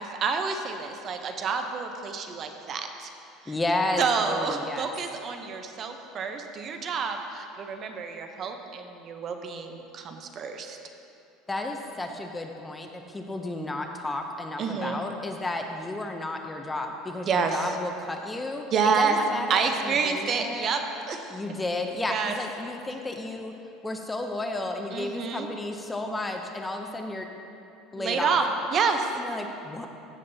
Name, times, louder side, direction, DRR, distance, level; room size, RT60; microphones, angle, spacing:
voice 1, 0.0-3.1 3.5-3.6 4.0-10.8 14.6-15.0 17.3-17.7 18.7-19.2 19.5-21.3 22.1-22.3 24.9-25.5 28.0-28.4 28.7-29.1, right 5 dB, 35° right, 5 dB, 0.6 m, -28 dB
voice 2, 3.5-4.9 11.5-20.7 21.3-23.5 23.8-27.3 27.9-28.4 29.1-29.9, left 2 dB, 10° left, 4 dB, 0.5 m, -32 dB
14.5 x 7.2 x 2.7 m, 2.7 s
cardioid pair, 150°, 0 cm